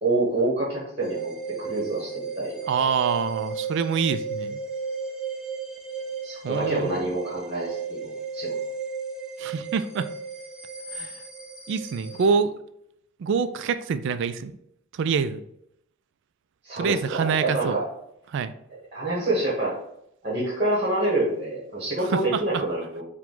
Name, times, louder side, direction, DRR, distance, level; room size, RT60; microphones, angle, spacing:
voice 1, 0.0-2.6 6.2-8.6 16.6-17.8 18.9-19.7 20.2-23.0, right 2 dB, 30° right, -6 dB, 1.2 m, -27 dB
sound 1, 1.0-12.3, right 5 dB, 5° right, 0.5 m, -34 dB
voice 2, 2.7-4.6 6.4-7.0 9.4-10.1 10.9-11.2 11.7-12.5 13.2-14.5 14.9-15.4 16.8-17.8 18.3-18.5 22.1-22.4, right 6 dB, 60° right, 12 dB, 0.3 m, -25 dB
4.7 x 2.2 x 3.7 m, 0.75 s
head